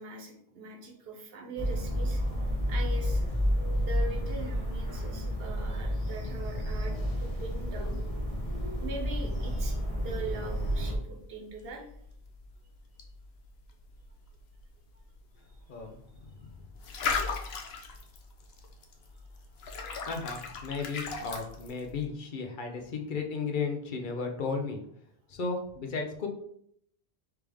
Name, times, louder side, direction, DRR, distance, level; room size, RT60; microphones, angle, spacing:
voice 1, 0.0-2.2 2.7-3.3 3.8-8.0 8.8-11.9, right 2 dB, 70° right, 2 dB, 1.1 m, -41 dB
sound 1, 1.6-10.9, equal, 35° left, 1.1 m, -31 dB
sound 2, 10.3-22.1, left 5 dB, 80° left, 1.0 m, -39 dB
voice 2, 20.1-24.8 25.3-26.3, left 4 dB, 55° left, 4 dB, 0.9 m, -34 dB
4.5 x 3.4 x 3.5 m, 0.69 s
omnidirectional pair, 1.0 m